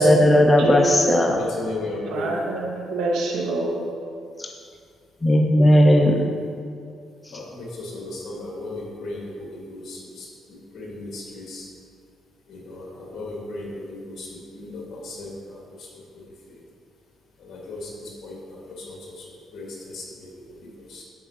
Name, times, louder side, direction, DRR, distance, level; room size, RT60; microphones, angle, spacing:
voice 1, 0.0-1.3 4.4-4.5 5.2-6.2, equal, 20° left, 2 dB, 0.5 m, -16 dB
voice 2, 0.6-1.2 2.1-3.8, right 2 dB, 85° right, -1 dB, 1.1 m, -25 dB
voice 3, 1.2-2.4 7.3-11.7 12.5-16.6 17.4-21.0, left 2 dB, 60° left, -4 dB, 1.7 m, -36 dB
10.5 x 4.6 x 2.8 m, 2.3 s
cardioid pair, 90°, 0 cm